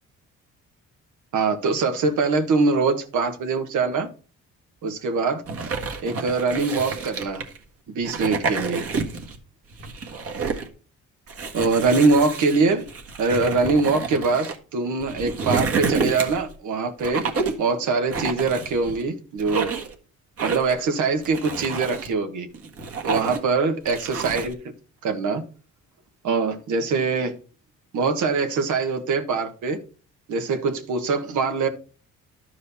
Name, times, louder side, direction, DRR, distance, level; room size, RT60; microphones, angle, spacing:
voice 1, 1.3-4.1 4.8-5.4 6.0-7.4 7.9-8.9 11.5-12.9 13.2-17.2 17.6-19.7 20.4-22.5 23.0-24.5 25.0-25.4 26.2-27.3 27.9-29.8 30.3-31.7, right 4 dB, 75° right, 1.4 m, -23 dB
sound 1, 5.5-7.6 8.0-9.4 9.7-10.7 11.3-14.6 15.0-16.5 17.0-17.7 18.1-19.0 19.4-19.9 20.4-20.8 21.2-22.1 22.5-23.5 23.9-24.5, right 4 dB, 50° right, 1.7 m, -29 dB
12.0 x 4.8 x 4.1 m
cardioid pair, 90°, 30 cm